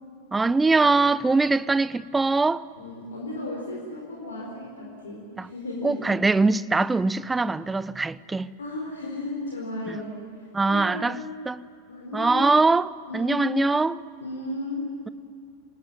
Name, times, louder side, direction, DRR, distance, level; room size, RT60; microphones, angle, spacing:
voice 1, 0.3-2.7 5.4-5.5 5.8-8.5 9.9-10.0 10.5-11.2 11.5-11.6 12.1-14.0, right 3 dB, 10° right, 0.6 m, -22 dB
voice 2, 2.8-6.0 8.6-10.2 10.7-11.3 11.9-12.6 13.1-13.5 14.2-14.9, left 2 dB, 70° left, 4.5 m, -34 dB
28.0 x 19.5 x 9.0 m
figure-of-eight pair, 90°, 0 cm